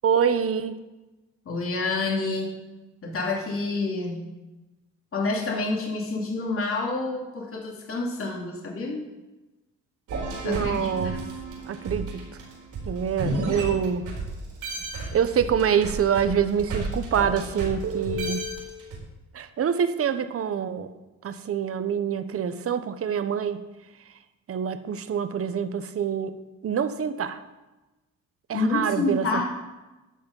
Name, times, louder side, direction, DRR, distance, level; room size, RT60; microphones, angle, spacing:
voice 1, 0.0-0.7 10.4-11.2 11.7-12.2 12.9-14.1 15.1-18.5 19.3-20.9 21.2-23.7 24.5-26.3 26.6-27.4 28.5-29.4, right 7 dB, 50° right, 11 dB, 0.9 m, -26 dB
voice 2, 1.5-2.6 3.0-4.2 5.1-9.0 10.4-10.9 28.5-29.4, left 3 dB, 45° left, -1 dB, 2.7 m, -28 dB
sound 1, 10.1-14.3 14.6-19.0, right 2 dB, 80° right, 4.4 m, -32 dB
12.5 x 6.6 x 5.4 m, 1.1 s
cardioid pair, 90°, 30 cm